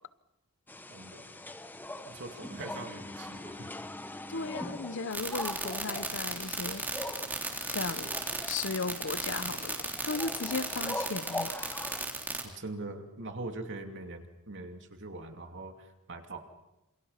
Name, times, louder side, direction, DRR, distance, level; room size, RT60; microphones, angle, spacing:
sound 1, 0.7-12.1, left 1 dB, 10° left, 0.9 m, -41 dB
voice 1, 0.9-1.3 2.1-3.7 12.4-16.4, right 2 dB, 55° right, 2.7 m, -42 dB
voice 2, 4.3-7.1 7.7-8.1 8.4-11.5, left 4 dB, 55° left, 0.8 m, -36 dB
sound 2, 5.1-12.4, right 2 dB, 10° right, 3.3 m, -34 dB
29.0 x 27.5 x 5.7 m
head